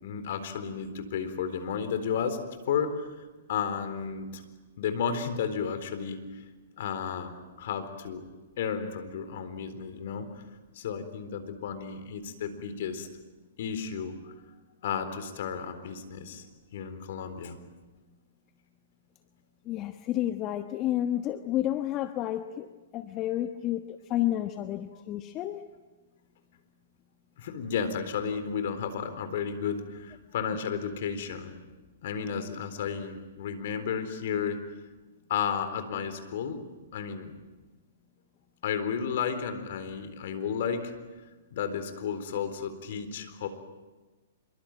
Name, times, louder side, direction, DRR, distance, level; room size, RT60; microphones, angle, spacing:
voice 1, 0.0-2.4 2.7-3.1 3.5-4.4 4.8-6.4 6.8-7.3 7.6-8.2 8.6-10.4 10.7-13.1 13.6-14.3 14.8-16.4 16.7-17.6 24.9-25.0 27.4-31.5 32.0-34.6 35.3-36.6 36.9-37.3 38.6-40.9 41.5-43.5, left 7 dB, 60° left, 9 dB, 4.0 m, -33 dB
voice 2, 19.6-25.6, left 13 dB, 30° left, 8 dB, 1.2 m, -31 dB
26.5 x 23.5 x 9.0 m, 1.2 s
hypercardioid pair, 115°, 0 cm